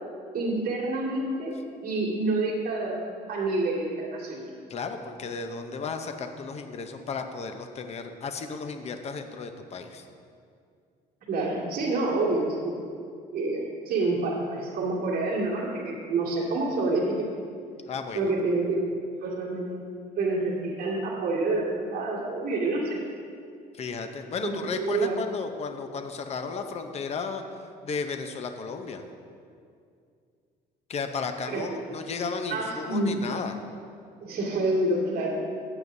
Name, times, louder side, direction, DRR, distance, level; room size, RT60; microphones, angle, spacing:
voice 1, 0.3-1.5 1.8-4.5 11.3-12.8 13.3-17.3 18.1-19.9 20.2-23.0 24.4-25.2 31.5-31.6 32.5-33.1 34.2-35.4, right 2 dB, 60° right, -6 dB, 2.2 m, -28 dB
voice 2, 4.7-10.1 17.9-18.3 23.7-29.0 30.9-33.5, left 5 dB, 40° left, 6 dB, 0.7 m, -34 dB
15.5 x 8.9 x 2.7 m, 2.3 s
cardioid pair, 110°, 17 cm